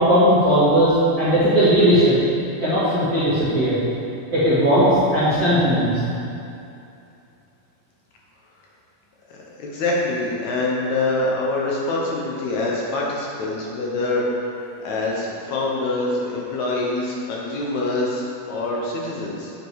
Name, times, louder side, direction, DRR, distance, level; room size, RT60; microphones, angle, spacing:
voice 1, 0.0-2.1 2.6-3.8 4.3-5.9, equal, 35° right, -14 dB, 1.8 m, -17 dB
voice 2, 9.3-14.3 14.6-19.5, left 2 dB, 70° left, -4 dB, 1.9 m, -25 dB
9.3 x 5.1 x 4.7 m, 2.7 s
omnidirectional pair, 4.1 m